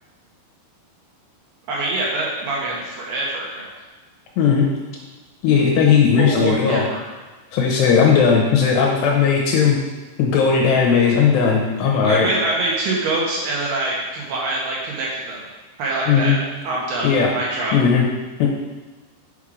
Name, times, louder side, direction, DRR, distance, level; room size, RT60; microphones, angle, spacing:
voice 1, 1.7-3.7 6.2-7.1 12.0-15.4 15.8-16.4 16.6-17.7, right 2 dB, 70° right, -4 dB, 2.8 m, -25 dB
voice 2, 4.4-4.7 5.4-6.9 7.5-9.8 10.2-12.3 16.1-16.4 17.0-17.3 17.7-18.1 18.4-18.5, left 6 dB, 75° left, -2 dB, 2.8 m, -16 dB
7.3 x 5.6 x 4.9 m, 1.3 s
omnidirectional pair, 5.5 m